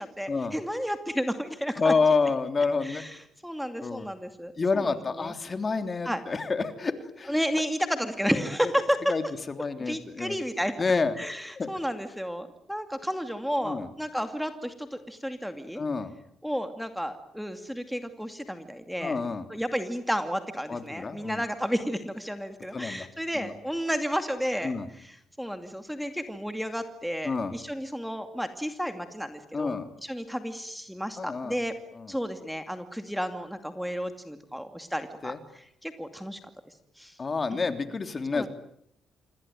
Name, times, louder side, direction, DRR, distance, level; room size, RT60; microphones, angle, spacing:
voice 1, 0.0-1.9 2.8-5.3 6.0-6.2 7.3-9.1 9.9-10.7 11.2-15.8 16.4-19.2 19.5-31.7 32.1-36.4 37.0-37.1 37.5-37.7 38.3-38.5, equal, ahead, 8 dB, 2.5 m, -32 dB
voice 2, 1.8-3.0 3.8-4.1 4.6-7.3 8.3-8.4 9.1-9.2 9.6-10.4 10.8-11.2 11.6-11.7 13.6-13.9 15.7-16.1 19.0-19.4 20.7-21.4 22.7-23.0 23.4-23.5 24.6-24.9 27.2-27.5 29.5-29.9 31.2-31.5 32.0-32.1 35.2-35.4 37.2-38.5, left 4 dB, 35° left, 8 dB, 3.3 m, -28 dB
27.0 x 24.0 x 9.2 m, 0.71 s
cardioid pair, 90°, 0 cm